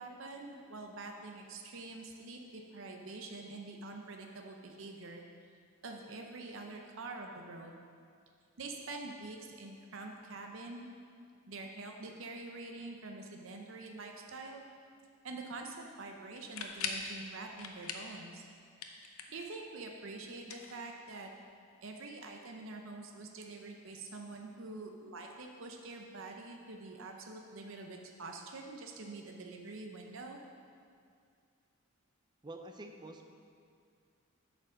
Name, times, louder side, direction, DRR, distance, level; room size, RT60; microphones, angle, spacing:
voice 1, 0.0-5.2 5.8-7.7 8.6-10.9 11.5-14.6 15.2-18.4 19.3-21.3 21.8-30.4, right 3 dB, 60° right, 2 dB, 0.6 m, -46 dB
sound 1, 16.3-17.1 17.6-18.2 18.5-19.5 20.4-21.3, left 6 dB, 80° left, 0.7 m, -41 dB
voice 2, 32.4-33.3, right 2 dB, 20° right, 4 dB, 0.5 m, -47 dB
8.7 x 5.1 x 6.3 m, 2.3 s
head